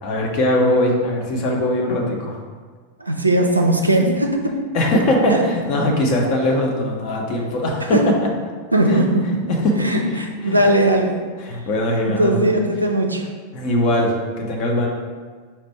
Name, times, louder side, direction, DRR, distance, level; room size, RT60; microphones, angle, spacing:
voice 1, 0.0-2.3 4.7-8.0 8.9-9.0 9.5-10.6 11.4-12.5 13.5-14.1 14.4-14.9, left 1 dB, 40° left, 0 dB, 0.8 m, -21 dB
voice 2, 3.0-4.4 4.9-5.0 5.3-5.4 7.9-8.0 8.7-9.5 9.8-11.2 12.0-13.2, right 1 dB, 85° right, 2 dB, 0.4 m, -18 dB
4.4 x 2.5 x 4.4 m, 1.5 s
figure-of-eight pair, 90°, 0 cm